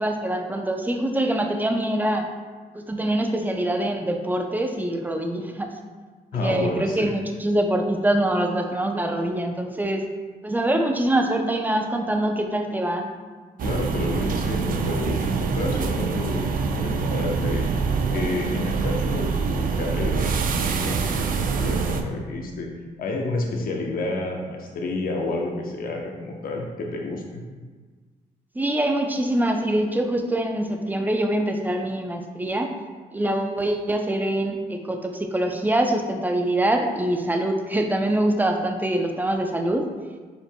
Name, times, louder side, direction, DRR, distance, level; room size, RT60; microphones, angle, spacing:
voice 1, 0.0-2.3 2.7-5.7 6.4-10.0 10.4-13.2 28.5-32.7 33.1-39.9, right 1 dB, 10° right, 4 dB, 0.6 m, -24 dB
voice 2, 6.3-7.1 13.6-17.7 18.1-22.7 23.0-27.4, left 2 dB, 60° left, 0 dB, 0.9 m, -30 dB
sound 1, 13.6-22.0, right 5 dB, 60° right, 0.5 m, -25 dB
5.2 x 4.4 x 2.2 m, 1.4 s
supercardioid pair, 70°, 16 cm